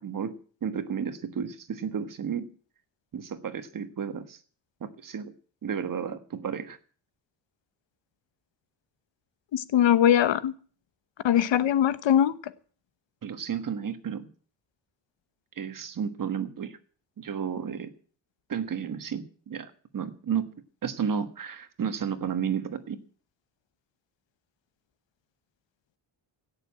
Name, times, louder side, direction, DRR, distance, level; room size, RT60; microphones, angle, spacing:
voice 1, 0.0-2.5 3.1-4.4 4.8-5.3 5.6-6.8 13.2-14.3 15.6-16.8 17.2-17.9 18.5-20.5 20.8-23.0, right 7 dB, 50° right, 1.4 m, -32 dB
voice 2, 9.5-10.5 11.2-12.4, left 10 dB, 80° left, 1.1 m, -21 dB
17.0 x 6.9 x 8.6 m
wide cardioid pair, 145°, 43 cm